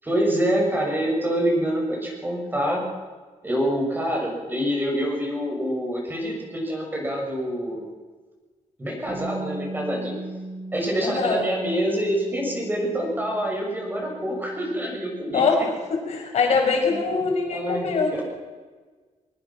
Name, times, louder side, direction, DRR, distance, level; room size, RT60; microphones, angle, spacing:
voice 1, 0.0-2.8 3.4-7.9 8.8-10.1 10.7-15.7 16.7-17.9, equal, 15° right, -1 dB, 7.1 m, -26 dB
Bass guitar, 9.1-15.3, right 2 dB, 35° right, 2.9 m, -38 dB
voice 2, 11.0-11.4 15.3-15.6 15.9-18.2, left 5 dB, 60° left, 2 dB, 5.5 m, -23 dB
23.0 x 23.0 x 6.0 m, 1.4 s
wide cardioid pair, 160°, 12 cm